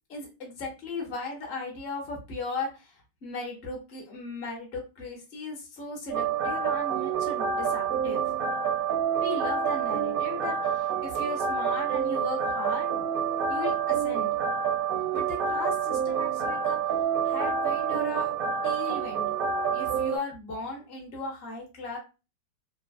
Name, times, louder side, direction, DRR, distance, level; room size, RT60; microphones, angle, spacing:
voice 1, 0.1-8.3 9.2-12.9 13.5-14.3 15.1-16.8 17.2-18.3 18.6-19.3 19.7-22.0, left 3 dB, 45° left, -1 dB, 0.9 m, -37 dB
sound 1, 6.1-20.2, right 7 dB, 65° right, 0.9 m, -28 dB
3.1 x 2.2 x 2.4 m, 0.29 s
omnidirectional pair, 2.0 m